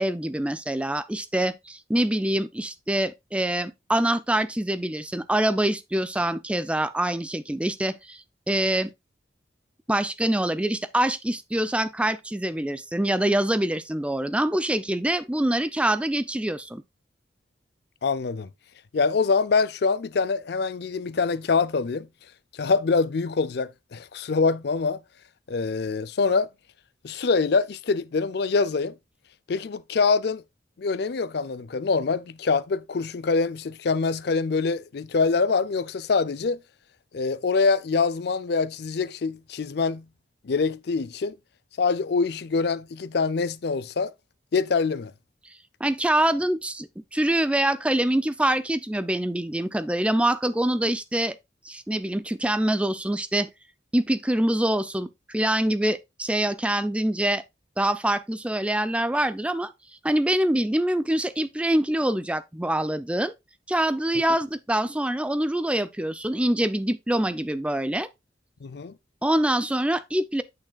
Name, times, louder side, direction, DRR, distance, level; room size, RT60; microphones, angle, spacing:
voice 1, 0.0-8.9 9.9-16.8 45.8-51.4 51.6-53.5 53.9-57.4 57.8-59.7 60.0-63.3 63.7-68.1 69.2-70.4, right 1 dB, 5° right, 0.4 m, -25 dB
voice 2, 18.0-18.5 18.9-22.1 22.5-25.0 25.5-26.5 27.0-29.0 29.5-30.4 30.8-36.6 37.1-40.0 40.4-41.4 41.8-44.1 44.5-45.1 68.6-68.9, left 4 dB, 60° left, 0.5 m, -24 dB
8.6 x 6.3 x 2.3 m
head